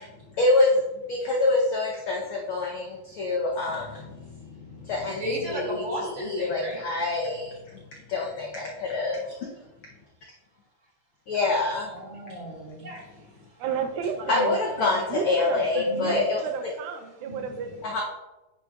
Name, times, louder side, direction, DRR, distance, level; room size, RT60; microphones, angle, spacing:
voice 1, 0.4-0.8 1.1-4.3 4.6-7.5 8.1-9.2 11.3-11.9 14.3-16.4 17.9-18.0, left 2 dB, 80° left, -1 dB, 1.1 m, -26 dB
voice 2, 5.2-6.9 11.9-13.2 14.1-14.5 14.8-14.9 15.8-16.2 17.2-17.4, right 1 dB, 40° right, -4 dB, 2.8 m, -34 dB
voice 3, 13.6-14.6 15.1-15.6 16.0-17.8, right 6 dB, 85° right, 5 dB, 2.2 m, -32 dB
9.5 x 6.1 x 2.4 m, 1.0 s
omnidirectional pair, 3.4 m